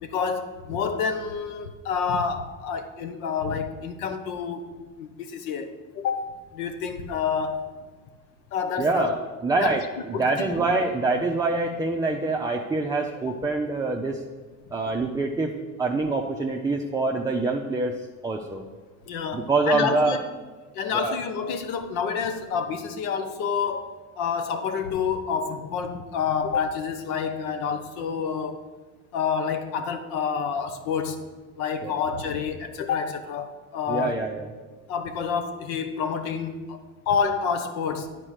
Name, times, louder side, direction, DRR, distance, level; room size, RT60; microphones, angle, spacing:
voice 1, 0.0-4.7 5.0-7.7 8.5-9.2 9.6-9.8 10.1-10.5 13.3-13.4 19.1-20.2 20.7-28.6 29.1-31.2 31.6-34.2 34.9-36.8 37.1-38.1, left 6 dB, 75° left, 8 dB, 1.0 m, -28 dB
voice 2, 8.8-9.8 10.1-14.2 14.7-17.9 18.2-18.6 19.3-20.2 20.9-21.1 31.8-31.9 33.9-34.5, right 3 dB, 10° right, 0 dB, 0.6 m, -25 dB
9.8 x 4.5 x 6.4 m, 1.3 s
hypercardioid pair, 75°, 43 cm